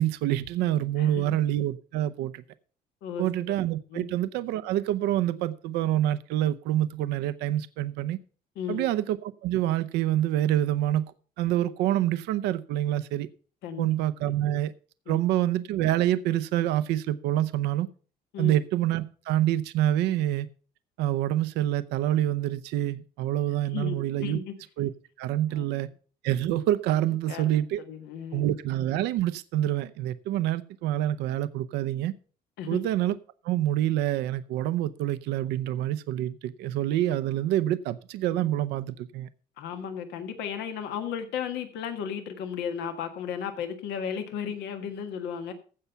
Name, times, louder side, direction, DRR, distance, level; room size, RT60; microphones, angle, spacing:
voice 1, 0.0-2.4 3.2-8.2 8.7-11.1 11.4-13.3 13.8-14.7 15.1-17.9 18.4-20.5 21.0-24.4 24.8-24.9 25.2-25.9 26.2-27.8 28.3-32.1 32.7-33.2 33.4-39.3, right 13 dB, 90° right, 0.7 m, -26 dB
voice 2, 1.0-1.3 3.0-3.3 3.9-4.1 8.5-8.8 13.6-13.9 14.2-14.3 15.1-15.2 18.3-18.6 23.7-24.5 25.5-25.6 27.3-27.6 27.9-28.5 32.6-32.8 39.6-45.5, left 7 dB, 85° left, 1.6 m, -34 dB
15.5 x 5.6 x 5.7 m
cardioid pair, 110°, 17 cm